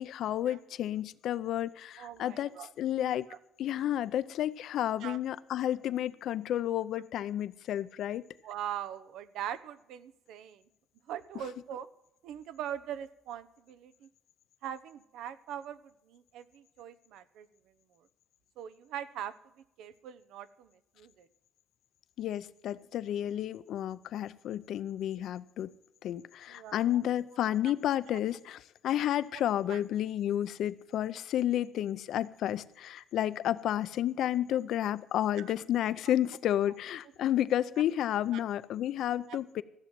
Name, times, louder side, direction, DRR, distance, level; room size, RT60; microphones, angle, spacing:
voice 1, 0.0-2.5 2.8-3.3 3.6-8.2 22.2-25.7 26.0-39.6, left 11 dB, 70° left, 15 dB, 0.6 m, -31 dB
voice 2, 2.0-2.7 3.3-3.4 5.0-5.2 8.4-10.6 11.1-11.9 12.2-14.1 14.6-15.8 16.1-17.5 18.6-19.3 19.8-20.7 21.0-21.3 26.5-27.0 27.6-27.7 29.3-29.4 29.7-29.8 34.5-34.6 35.4-35.5 36.0-36.1 36.7-36.8 37.0-37.1 37.8-37.9 38.3-38.4 39.3-39.4, right 10 dB, 85° right, 14 dB, 0.8 m, -41 dB
14.5 x 7.3 x 9.1 m, 0.85 s
cardioid pair, 135°, 0 cm